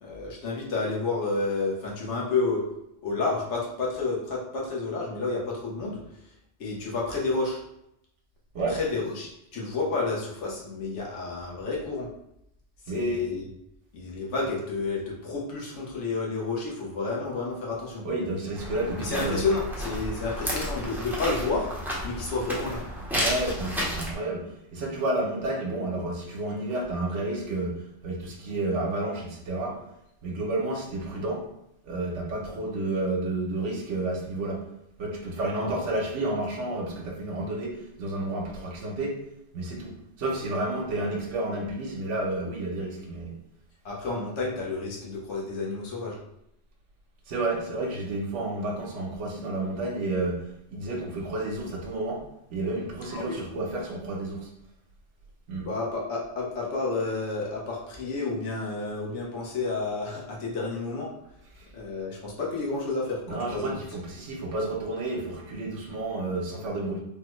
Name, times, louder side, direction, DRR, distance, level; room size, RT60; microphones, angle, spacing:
voice 1, 0.0-2.6 3.0-6.0 6.6-7.6 8.7-12.1 12.9-13.5 13.9-18.0 19.0-21.7 22.0-22.8 35.5-35.7 43.8-46.2 53.1-53.4 55.6-61.1 61.7-63.8, left 3 dB, 75° left, -3 dB, 1.2 m, -30 dB
voice 2, 12.9-13.2 18.0-19.4 23.2-29.8 30.2-31.5 31.8-34.6 35.0-39.2 39.5-43.4 47.3-50.4 50.7-52.2 52.5-54.5 55.5-55.7 61.6-61.7 63.3-67.0, right 2 dB, 80° right, 0 dB, 1.0 m, -31 dB
sound 1, 18.6-24.1, equal, 5° right, 0.3 m, -32 dB
3.4 x 2.1 x 3.0 m, 0.80 s
omnidirectional pair, 1.2 m